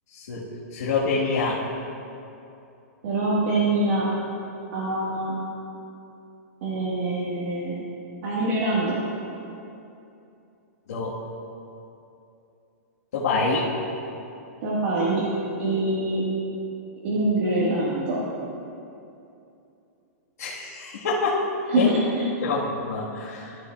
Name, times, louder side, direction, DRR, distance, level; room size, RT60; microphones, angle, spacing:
voice 1, 0.1-0.4 0.7-1.6 10.9-11.1 13.1-13.6 20.4-21.4 21.7-21.9 22.4-23.6, left 4 dB, 70° left, -9 dB, 1.7 m, -26 dB
voice 2, 3.0-4.1 4.7-5.3 6.6-7.8 8.2-9.0 14.6-15.2 15.6-16.2 17.0-18.2 21.7-22.3, right 2 dB, 55° right, -8 dB, 1.7 m, -24 dB
14.0 x 7.4 x 2.4 m, 2.7 s
hypercardioid pair, 160°, 9 cm